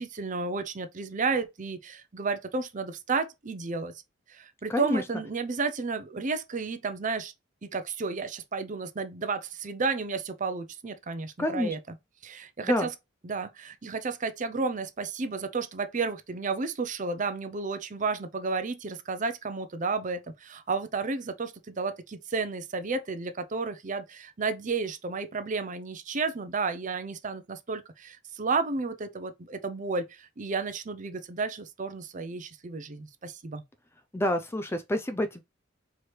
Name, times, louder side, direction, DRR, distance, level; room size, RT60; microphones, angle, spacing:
voice 1, 0.0-3.9 4.3-7.3 7.6-11.8 12.2-12.9 13.2-33.6, right 4 dB, 40° right, 0.6 m, -32 dB
voice 2, 4.7-5.0 11.4-11.8 12.6-12.9 34.1-35.4, left 1 dB, 10° left, 0.4 m, -28 dB
4.7 x 3.1 x 3.1 m
head